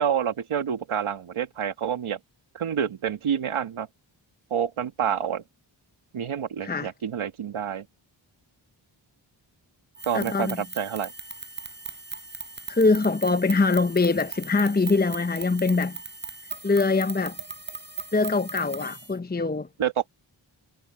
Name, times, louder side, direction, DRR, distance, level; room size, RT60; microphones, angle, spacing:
voice 1, 0.0-2.2 2.5-3.9 4.5-5.4 6.1-7.9 10.0-11.1 19.8-20.1, right 8 dB, 80° right, 1.7 m, -28 dB
sound 1, 9.9-19.1, right 5 dB, 20° right, 6.0 m, -39 dB
voice 2, 10.1-10.6 12.7-16.0 16.6-17.4 18.1-19.7, left 3 dB, 20° left, 0.8 m, -23 dB
cardioid pair, 40°, 48 cm